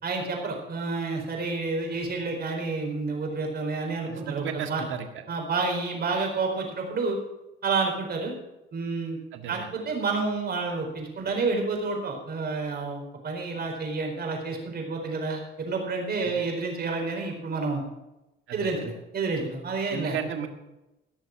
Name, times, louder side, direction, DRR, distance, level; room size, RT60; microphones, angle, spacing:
voice 1, 0.0-4.8 5.3-7.2 7.6-8.3 8.7-9.2 9.5-17.8 18.5-20.1, right 4 dB, 50° right, 1 dB, 4.5 m, -29 dB
voice 2, 4.1-5.1 9.3-9.7 16.2-16.4 18.5-18.8 19.9-20.5, right 8 dB, 80° right, 5 dB, 1.8 m, -34 dB
17.0 x 6.5 x 7.4 m, 0.95 s
cardioid pair, 90°, 20 cm